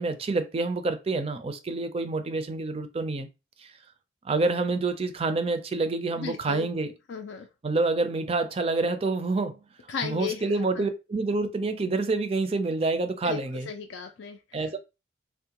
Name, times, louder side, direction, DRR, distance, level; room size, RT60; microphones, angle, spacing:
voice 1, 0.0-3.3 3.6-3.7 4.2-6.9 7.6-9.6 10.0-13.7 14.5-14.8, right 3 dB, 30° right, 0.4 m, -27 dB
voice 2, 6.2-6.7 7.1-7.5 9.9-10.5 10.8-10.9 13.2-13.4 13.7-14.7, left 6 dB, 70° left, 0.4 m, -35 dB
3.5 x 2.1 x 2.8 m
head